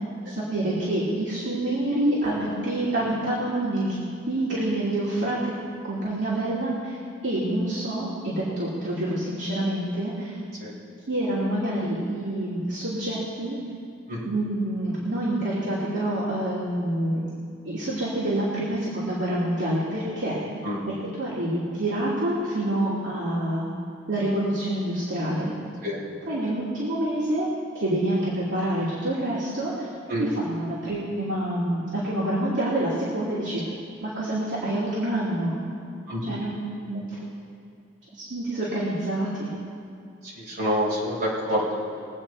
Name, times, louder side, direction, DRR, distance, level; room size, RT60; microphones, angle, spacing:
voice 1, 0.3-4.0 4.3-5.5 5.8-7.0 7.2-10.4 11.1-13.6 14.2-17.2 17.6-20.4 21.2-23.6 24.1-25.5 26.3-27.5 27.7-29.7 30.2-33.6 34.0-35.6 36.2-37.0 38.1-39.5, right 1 dB, 70° right, -9 dB, 2.7 m, -27 dB
voice 2, 40.2-41.7, equal, 55° right, -5 dB, 4.0 m, -27 dB
22.0 x 8.5 x 4.5 m, 2.4 s
head